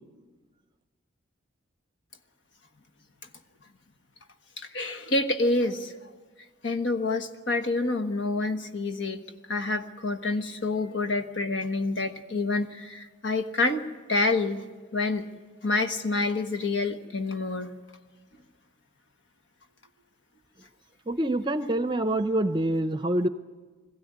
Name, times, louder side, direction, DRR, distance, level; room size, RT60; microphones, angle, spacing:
voice 1, 4.6-6.1 6.6-9.2 9.5-14.6 14.9-15.3 15.6-17.7, left 2 dB, 75° left, 8 dB, 1.4 m, -28 dB
voice 2, 21.1-23.3, right 1 dB, 25° right, 10 dB, 0.6 m, -26 dB
22.0 x 15.5 x 9.5 m, 1.4 s
head